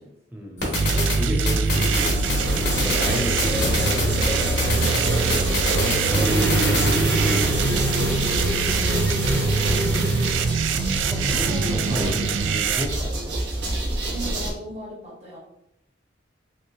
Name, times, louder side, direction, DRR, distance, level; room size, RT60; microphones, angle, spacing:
voice 1, 0.3-4.8 5.1-8.2 9.7-10.1 10.7-13.4, equal, 10° right, -1 dB, 0.6 m, -33 dB
sound 1, 0.6-7.0, left 2 dB, 65° left, 1.1 m, -28 dB
sound 2, 0.7-12.9, right 4 dB, 90° right, 0.3 m, -24 dB
sound 3, 1.7-14.5, right 1 dB, 65° right, 0.8 m, -26 dB
voice 2, 9.0-10.1 11.3-12.2 14.1-15.4, right 1 dB, 35° right, -3 dB, 1.1 m, -37 dB
3.1 x 2.9 x 2.7 m, 0.79 s
head